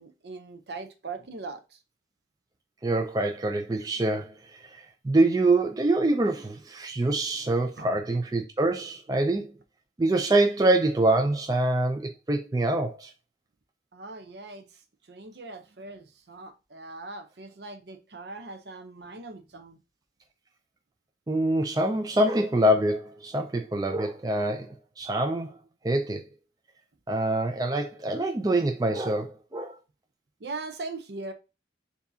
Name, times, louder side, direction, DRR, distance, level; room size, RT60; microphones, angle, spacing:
voice 1, 0.0-1.6 7.8-8.0 13.9-14.6 15.1-19.8 30.4-31.3, right 3 dB, 65° right, 0.7 m, -40 dB
voice 2, 2.8-9.5 10.0-13.1 21.3-25.5 25.8-26.2 27.1-29.7, right 2 dB, 20° right, 0.4 m, -25 dB
6.9 x 2.7 x 2.7 m
head